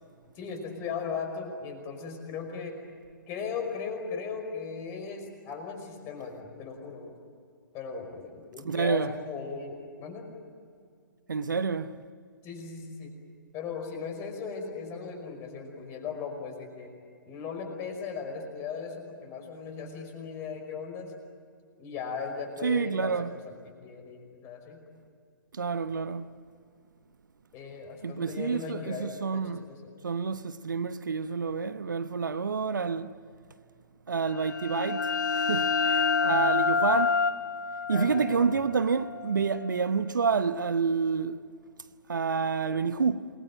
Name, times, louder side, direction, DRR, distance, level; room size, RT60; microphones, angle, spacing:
voice 1, 0.3-2.8 3.3-7.1 7.7-10.3 12.4-13.1 13.5-16.9 17.3-21.1 21.8-23.1 23.4-24.8 27.5-29.9 37.9-38.6, left 5 dB, 25° left, 5.3 m, -37 dB
voice 2, 8.6-9.1 11.3-12.0 22.6-23.3 25.5-26.3 28.0-29.6 30.0-33.1 34.1-37.2 37.9-41.4 42.1-43.3, right 5 dB, 65° right, 0.9 m, -28 dB
sound 1, 34.3-39.8, left 5 dB, 60° left, 0.7 m, -28 dB
28.0 x 21.5 x 9.1 m
figure-of-eight pair, 125°, 11 cm